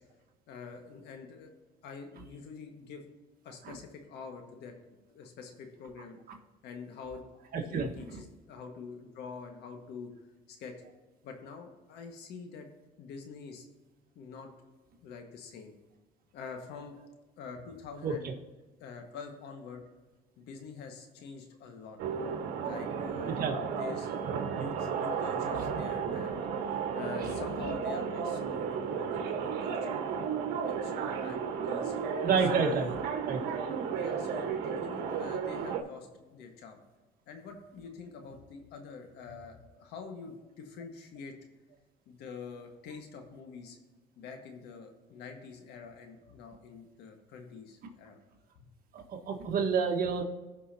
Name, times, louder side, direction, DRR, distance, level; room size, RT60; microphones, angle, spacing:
voice 1, 0.5-1.5 1.8-3.1 3.4-6.1 6.6-7.2 7.6-10.1 10.5-10.7 11.2-12.7 13.0-13.7 14.1-14.5 15.0-15.7 16.3-17.0 17.4-18.3 18.8-19.8 20.4-22.0 22.6-26.5 26.9-30.0 30.6-31.9 32.5-33.0 33.9-36.8 37.3-41.3 42.0-43.8 44.2-48.2 48.5-48.6, left 5 dB, 80° left, 4 dB, 1.6 m, -46 dB
voice 2, 7.5-7.9 18.0-18.1 23.4-23.5 25.6-25.7 27.2-27.3 32.2-32.9 33.2-33.4 48.9-50.2, right 5 dB, 60° right, 3 dB, 1.6 m, -29 dB
sound 1, 22.0-35.8, right 6 dB, 80° right, 1.4 m, -33 dB
16.5 x 5.6 x 2.8 m, 1.2 s
cardioid pair, 110°, 17 cm